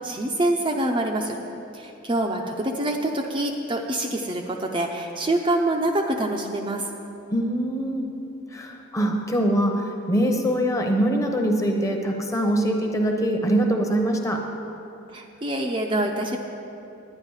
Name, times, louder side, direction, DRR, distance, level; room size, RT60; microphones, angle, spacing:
voice 1, 0.0-1.4 1.7-6.9 15.1-16.4, right 1 dB, 25° right, 1 dB, 0.5 m, -25 dB
voice 2, 7.3-8.1 8.5-14.4, right 1 dB, 15° left, 2 dB, 0.8 m, -23 dB
10.5 x 10.0 x 4.8 m, 2.9 s
head